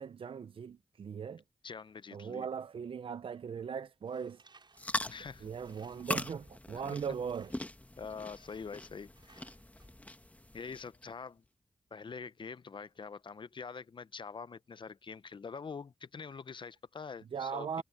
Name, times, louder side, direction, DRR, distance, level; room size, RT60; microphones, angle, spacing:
voice 1, 0.0-1.4 2.1-4.4 5.4-7.5 17.3-17.8, right 6 dB, 70° right, 0.6 m, -39 dB
voice 2, 1.6-2.5 5.1-5.5 7.1-7.2 8.0-9.4 10.5-11.4 11.9-17.8, left 5 dB, 60° left, 0.8 m, -45 dB
Tools, 4.0-6.3 7.0-7.7 8.3-8.9 9.1-9.9, right 4 dB, 55° right, 6.5 m, -64 dB
sound 1, 4.7-11.1, left 1 dB, 15° left, 1.3 m, -41 dB
cardioid pair, 45°, 10 cm